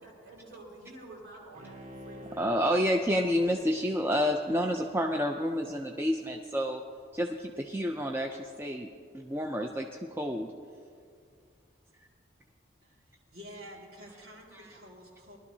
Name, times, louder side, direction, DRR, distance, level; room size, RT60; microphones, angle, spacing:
voice 1, 0.0-2.4, right 2 dB, 80° right, -4 dB, 3.4 m, -49 dB
Bowed string instrument, 1.5-6.2 6.6-6.7, left 1 dB, 35° right, 1.0 m, -50 dB
voice 2, 2.4-6.8 7.1-8.9 9.1-9.9 10.2-10.5 12.0-12.1 14.6-14.7, equal, 10° right, 2 dB, 0.4 m, -29 dB
voice 3, 12.8-15.4, equal, 50° right, -2 dB, 2.1 m, -49 dB
18.5 x 12.0 x 2.7 m, 2.3 s
head